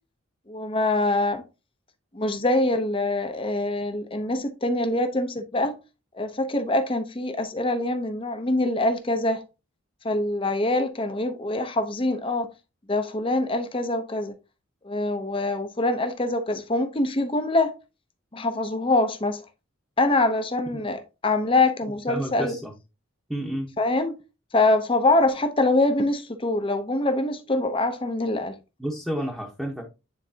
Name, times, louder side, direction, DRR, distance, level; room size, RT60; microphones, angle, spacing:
voice 1, 0.5-1.4 2.1-5.7 6.1-9.4 10.0-12.5 12.9-14.4 14.8-17.8 18.3-19.4 20.0-22.6 23.8-24.1 24.5-28.6, left 2 dB, 25° left, 0.7 m, -24 dB
voice 2, 22.1-22.7 23.3-23.7 28.8-29.8, equal, ahead, 1.0 m, -30 dB
9.5 x 4.0 x 2.8 m
head